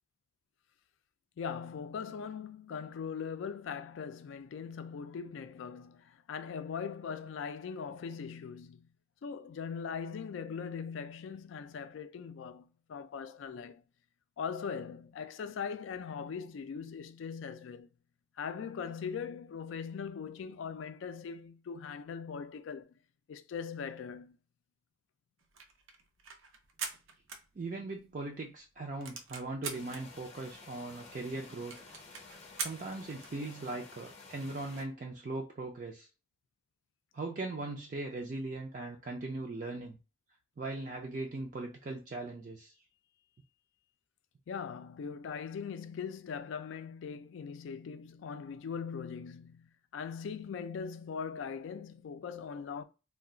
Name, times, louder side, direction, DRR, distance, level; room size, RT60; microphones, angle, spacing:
voice 1, 1.4-8.9 9.2-13.8 14.4-17.9 18.4-22.9 23.3-24.4 44.5-52.8, left 6 dB, 75° left, 0.3 m, -40 dB
sound 1, 25.4-28.1 28.4-28.5 28.8-30.0 30.6-30.7 30.9-31.0 31.3-31.4 31.7-33.4, right 6 dB, 90° right, 0.6 m, -42 dB
voice 2, 27.6-31.8 32.6-36.1 37.1-40.0 40.6-42.7, right 2 dB, 40° right, 0.4 m, -39 dB
sound 2, 29.7-34.8, left 3 dB, 35° left, 0.6 m, -52 dB
2.3 x 2.2 x 3.8 m
head